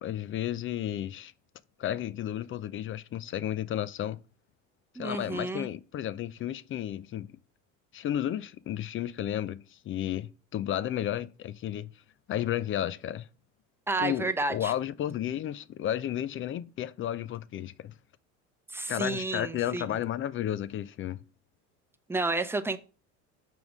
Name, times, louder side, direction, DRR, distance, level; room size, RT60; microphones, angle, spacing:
voice 1, 0.0-1.3 1.8-4.2 5.0-7.3 7.9-11.9 12.3-13.3 14.0-17.9 18.9-21.2, left 11 dB, 35° left, 0.4 m, -32 dB
voice 2, 5.0-5.7 13.9-14.7 18.7-19.9 22.1-22.8, right 2 dB, 5° right, 0.7 m, -31 dB
6.0 x 3.7 x 6.0 m
supercardioid pair, 90°, 39 cm